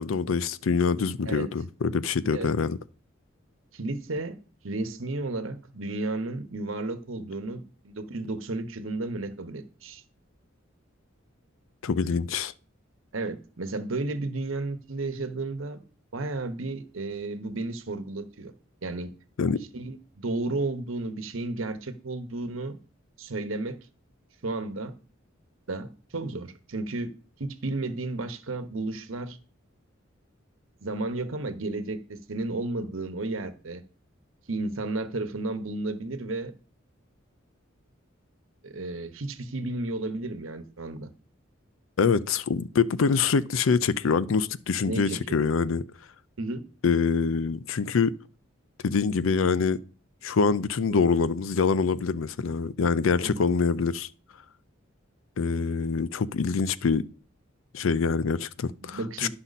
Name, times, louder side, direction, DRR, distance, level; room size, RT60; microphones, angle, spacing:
voice 1, 0.0-2.8 11.8-12.5 19.4-19.6 42.0-45.8 46.8-48.1 48.8-49.8 50.2-54.1 55.4-57.1 57.7-59.3, left 5 dB, 80° left, 0.5 m, -25 dB
voice 2, 3.7-4.4 4.6-10.0 13.1-15.8 16.1-18.5 18.8-19.1 19.6-22.8 23.2-23.8 24.4-24.9 25.7-27.1 27.4-29.4 30.8-33.8 34.5-36.5 38.6-41.1 44.8-45.4 46.4-46.6 50.9-51.0 53.2-53.3 58.8-59.3, right 2 dB, 80° right, 1.0 m, -33 dB
11.0 x 5.8 x 4.1 m
head